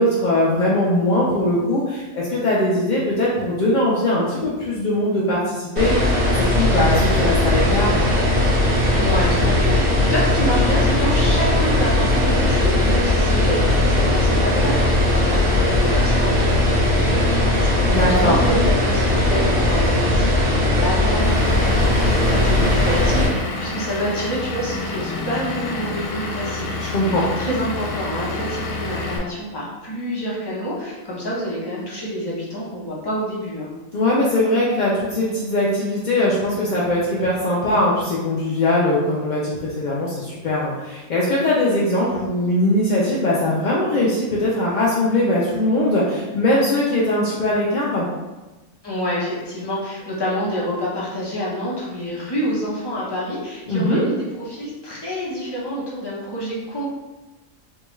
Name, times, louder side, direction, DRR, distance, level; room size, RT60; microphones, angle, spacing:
voice 1, 0.0-5.9 6.3-8.1 17.9-18.4 26.8-27.2 33.9-48.1 53.7-54.0, left 1 dB, 65° left, -6 dB, 0.4 m, -20 dB
sound 1, 5.8-23.3, left 1 dB, 70° right, 1.7 m, -18 dB
voice 2, 8.9-14.8 15.1-33.7 48.8-56.8, equal, 20° left, -7 dB, 0.7 m, -27 dB
Vehicle / Engine, 21.2-29.2, left 2 dB, 85° left, 1.0 m, -28 dB
3.6 x 2.3 x 3.0 m, 1.1 s
omnidirectional pair, 1.4 m